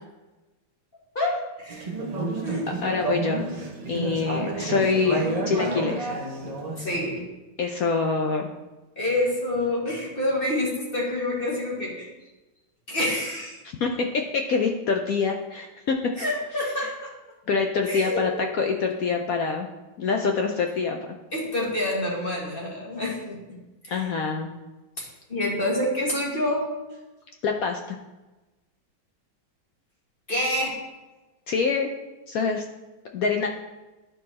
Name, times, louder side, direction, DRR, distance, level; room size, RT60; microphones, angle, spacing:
voice 1, 1.2-1.9 2.4-2.7 3.9-4.2 6.8-7.2 9.0-12.1 12.9-13.6 16.2-17.1 17.8-18.3 21.3-23.6 23.8-24.1 25.0-26.7 30.3-30.8, left 1 dB, 30° left, -4 dB, 1.7 m, -27 dB
Conversation / Chatter, 1.7-7.1, right 2 dB, 45° right, 0.5 m, -30 dB
voice 2, 2.8-3.5 3.9-6.1 7.6-8.5 13.8-16.0 17.5-19.7 20.0-21.1 23.9-24.5 27.4-28.0 31.5-31.9 32.3-32.6 33.1-33.5, left 5 dB, 75° left, 3 dB, 0.8 m, -25 dB
11.0 x 4.6 x 4.2 m, 1.1 s
omnidirectional pair, 2.2 m